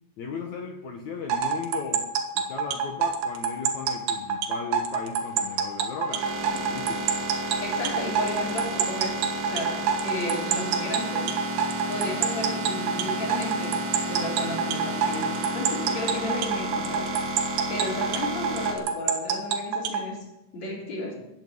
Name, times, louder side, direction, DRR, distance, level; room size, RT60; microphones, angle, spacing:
voice 1, 0.2-2.1 2.4-7.0 7.9-8.0, left 5 dB, 75° left, 3 dB, 1.7 m, -37 dB
sound 1, 1.3-20.0, right 6 dB, 75° right, 3.6 m, -26 dB
sound 2, 5.2-18.7, right 2 dB, 40° right, 1.9 m, -32 dB
voice 2, 7.6-11.3 11.9-13.8 14.1-17.1 17.7-21.1, left 1 dB, 40° left, -1 dB, 4.4 m, -33 dB
15.0 x 9.4 x 9.3 m, 0.91 s
omnidirectional pair, 5.3 m